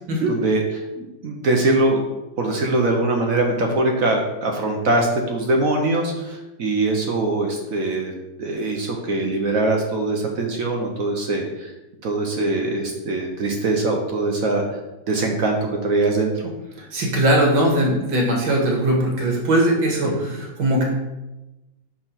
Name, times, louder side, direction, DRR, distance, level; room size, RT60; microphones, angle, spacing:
voice 1, 0.3-0.6 1.0-2.0 2.4-8.1 8.4-11.7 12.0-14.6 15.1-16.3 20.0-20.4, right 2 dB, 55° right, 1 dB, 1.1 m, -22 dB
voice 2, 16.8-20.8, right 1 dB, 80° right, -1 dB, 2.3 m, -20 dB
5.0 x 4.6 x 5.7 m, 1.0 s
omnidirectional pair, 2.1 m